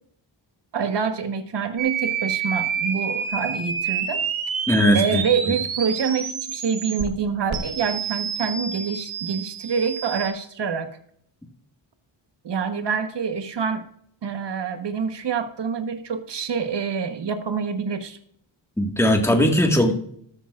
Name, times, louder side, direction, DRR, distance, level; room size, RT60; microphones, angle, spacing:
voice 1, 0.7-4.2 4.9-11.0 12.4-13.8 14.2-18.2, right 6 dB, 60° right, 8 dB, 1.3 m, -26 dB
sound 1, 1.8-7.1 7.5-10.3, right 7 dB, 80° right, 1.5 m, -28 dB
voice 2, 4.7-5.2 18.8-19.9, equal, 5° left, 2 dB, 1.7 m, -19 dB
13.5 x 13.0 x 2.5 m, 0.65 s
wide cardioid pair, 95°, 46 cm